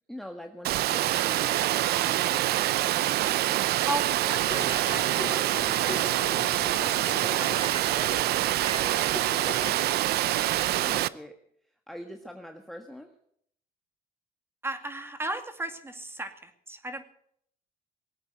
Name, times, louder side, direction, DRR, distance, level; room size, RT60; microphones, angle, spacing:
voice 1, 0.1-3.7 8.9-11.3 11.6-13.1, equal, ahead, 4 dB, 1.5 m, -45 dB
Water, 0.6-11.1, right 15 dB, 70° right, 0.6 m, -26 dB
voice 2, 3.8-7.7 14.6-17.0, right 2 dB, 15° right, 8 dB, 2.2 m, -37 dB
sound 1, 4.5-10.0, left 2 dB, 35° left, 4.1 m, -39 dB
19.0 x 8.7 x 8.1 m, 0.67 s
cardioid pair, 110°, 17 cm